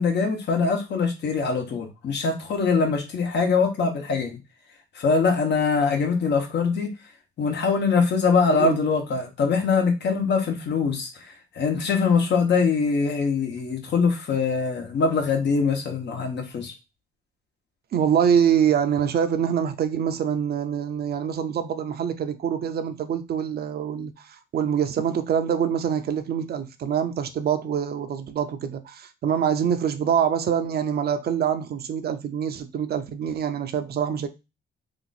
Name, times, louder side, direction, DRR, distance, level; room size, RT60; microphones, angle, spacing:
voice 1, 0.0-4.4 4.9-6.9 7.4-16.7, left 5 dB, 60° left, 1.1 m, -23 dB
voice 2, 17.9-34.3, right 8 dB, 50° right, 0.6 m, -25 dB
2.9 x 2.4 x 4.0 m
cardioid pair, 90°, 20 cm